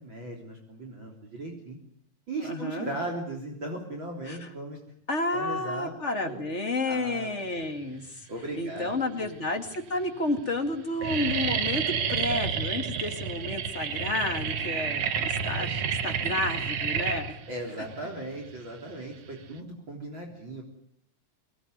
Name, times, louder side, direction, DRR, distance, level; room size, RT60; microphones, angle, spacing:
voice 1, 0.0-1.8 2.3-4.8 5.3-5.9 6.2-6.4 6.8-7.4 8.3-9.4 15.5-15.7 17.5-20.6, right 2 dB, 40° right, 1 dB, 4.2 m, -37 dB
voice 2, 2.4-2.9 4.3-4.5 5.1-8.3 8.6-17.4, left 2 dB, 25° left, 6 dB, 2.2 m, -31 dB
sound 1, 8.4-9.0 9.7-9.8 10.0-10.4 10.7-19.6, right 6 dB, 60° right, 2.3 m, -30 dB
24.5 x 19.5 x 9.5 m, 0.69 s
omnidirectional pair, 3.4 m